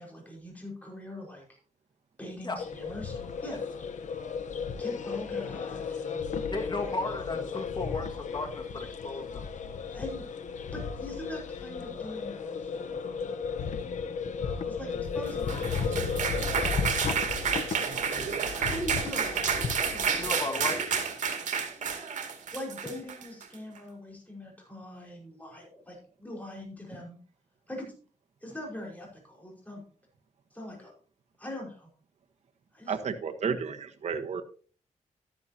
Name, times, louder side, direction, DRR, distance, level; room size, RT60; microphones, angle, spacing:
voice 1, 0.0-1.4 2.2-3.2 3.4-3.6 4.8-6.3 9.9-10.2 10.7-12.7 14.7-16.4 18.1-20.5 22.5-27.2 27.7-27.9 28.4-29.8 30.5-30.9 31.4-31.9 32.7-33.0, left 1 dB, 10° left, 5.0 m, -42 dB
sound 1, 2.6-20.3, left 6 dB, 70° left, 1.0 m, -34 dB
voice 2, 6.5-9.5 20.2-20.8, left 2 dB, 35° left, 2.0 m, -35 dB
sound 2, 15.3-23.5, right 6 dB, 80° right, 2.4 m, -30 dB
voice 3, 32.9-34.4, right 6 dB, 65° right, 1.3 m, -32 dB
12.5 x 11.5 x 2.9 m
wide cardioid pair, 115°, 13 cm